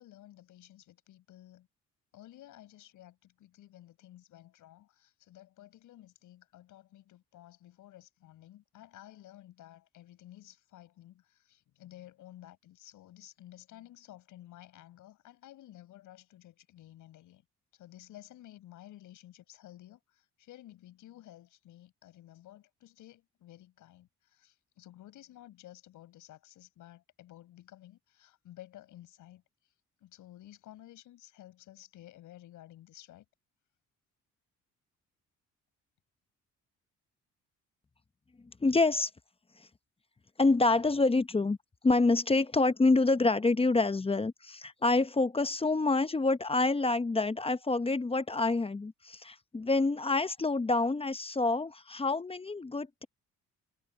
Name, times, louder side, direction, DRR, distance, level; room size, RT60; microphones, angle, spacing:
voice 1, 0.0-1.7 2.1-17.4 17.8-29.4 30.0-33.2, left 14 dB, 85° left, 6.4 m, -53 dB
voice 2, 38.6-39.1 40.4-41.6 41.8-53.1, left 3 dB, 20° left, 0.8 m, -27 dB
cardioid pair, 90°, 30 cm